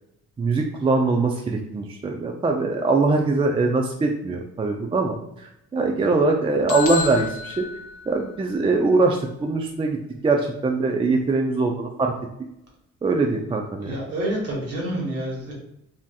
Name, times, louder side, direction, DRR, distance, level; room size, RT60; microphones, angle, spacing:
voice 1, 0.4-7.7 8.1-10.0 10.2-12.1 13.0-14.0, right 3 dB, 20° right, 2 dB, 0.3 m, -22 dB
sound 1, 6.7-8.6, left 6 dB, 85° left, 0.6 m, -31 dB
voice 2, 13.8-15.5, right 1 dB, 55° right, -2 dB, 1.3 m, -28 dB
3.5 x 2.6 x 2.3 m, 0.80 s
cardioid pair, 90°, 30 cm